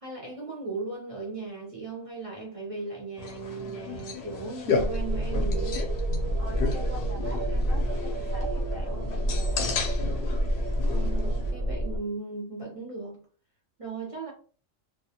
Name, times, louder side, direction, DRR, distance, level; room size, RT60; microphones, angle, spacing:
voice 1, 0.0-5.9 10.8-13.2 13.8-14.3, right 3 dB, 50° right, 0.4 m, -37 dB
sound 1, 3.2-11.5, left 4 dB, 65° left, 0.6 m, -34 dB
sound 2, 4.7-12.0, equal, 65° right, 0.8 m, -28 dB
voice 2, 6.4-9.9, left 1 dB, 15° right, 0.6 m, -43 dB
2.2 x 2.1 x 2.8 m
omnidirectional pair, 1.4 m